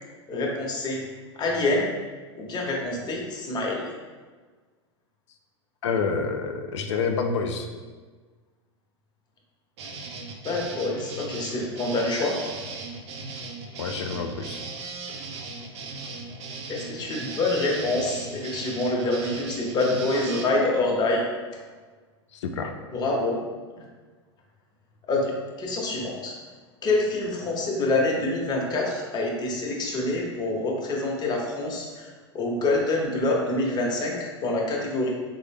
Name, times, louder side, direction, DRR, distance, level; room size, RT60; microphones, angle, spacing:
voice 1, 0.3-1.0 1.4-1.9 2.4-3.9 10.4-12.4 16.7-21.2 22.9-23.4 25.1-25.3 25.6-26.3 26.8-32.1 32.3-35.1, left 2 dB, 30° left, -1 dB, 0.8 m, -26 dB
voice 2, 5.8-7.7 13.8-14.6 22.3-22.8, left 5 dB, 80° left, 5 dB, 0.4 m, -28 dB
sound 1, 9.8-20.4, right 4 dB, 70° right, 0.5 m, -37 dB
3.7 x 2.0 x 3.3 m, 1.4 s
hypercardioid pair, 105°, 15 cm